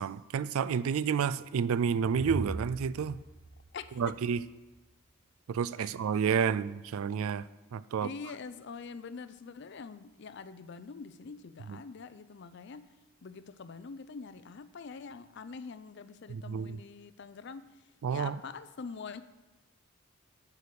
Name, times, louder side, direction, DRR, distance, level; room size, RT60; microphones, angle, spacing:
voice 1, 0.0-3.2 4.0-4.4 5.5-8.1 11.7-11.8 16.3-16.8 18.0-18.4, right 7 dB, 70° right, 17 dB, 0.3 m, -30 dB
Space ship, 1.7-4.8, right 2 dB, 25° right, 1.5 m, -41 dB
voice 2, 3.7-4.2 5.8-6.3 8.0-12.9 13.2-17.7 18.1-19.2, left 5 dB, 50° left, 13 dB, 0.4 m, -45 dB
9.3 x 4.7 x 6.8 m, 1.2 s
head